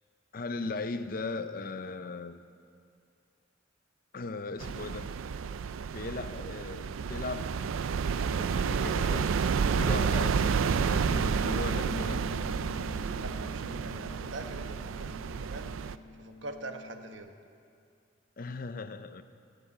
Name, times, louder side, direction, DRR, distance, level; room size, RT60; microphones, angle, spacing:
voice 1, 0.3-2.4 4.1-5.1 5.9-7.5 8.2-9.3 9.6-12.3 18.4-19.2, left 3 dB, 45° left, 11 dB, 0.5 m, -38 dB
sound 1, 4.6-16.0, right 6 dB, 90° right, 0.4 m, -30 dB
Bass guitar, 10.9-17.2, left 2 dB, 70° left, 1.8 m, -46 dB
voice 2, 13.2-15.7 16.2-17.3, right 2 dB, 65° right, 6 dB, 1.1 m, -43 dB
18.5 x 6.9 x 8.6 m, 2.4 s
head